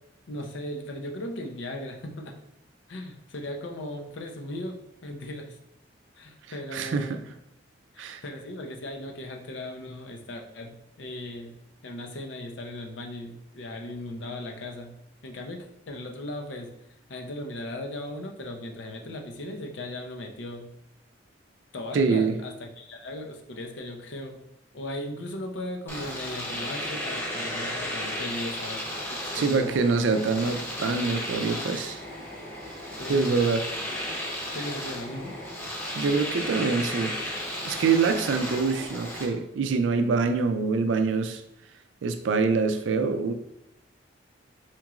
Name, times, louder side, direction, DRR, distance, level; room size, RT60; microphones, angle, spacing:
voice 1, 0.3-2.3 2.9-5.6 6.1-7.3 7.9-11.6 11.8-15.0 15.2-16.7 17.1-20.7 21.7-24.4 24.7-28.8 29.1-29.7 32.9-33.5 34.5-35.4, left 1 dB, 75° left, 3 dB, 0.6 m, -37 dB
voice 2, 6.7-7.2 8.0-8.2 21.9-22.3 29.3-32.0 33.1-33.6 36.0-37.2 37.6-41.4 42.0-43.3, right 4 dB, 80° right, 8 dB, 0.4 m, -25 dB
Domestic sounds home sounds, 25.9-39.3, left 1 dB, 15° left, 0.7 m, -34 dB
4.4 x 2.9 x 2.4 m, 0.79 s
head